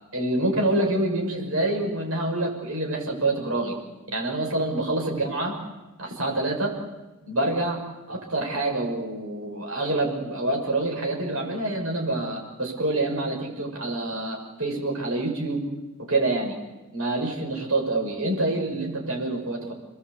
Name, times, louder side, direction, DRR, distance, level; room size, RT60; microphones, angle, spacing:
voice 1, 0.1-3.7 4.1-5.5 6.0-6.7 7.3-7.8 8.1-15.6 16.1-16.6 16.9-19.7, right 2 dB, 80° right, 0 dB, 6.8 m, -26 dB
29.5 x 21.5 x 8.4 m, 1.1 s
head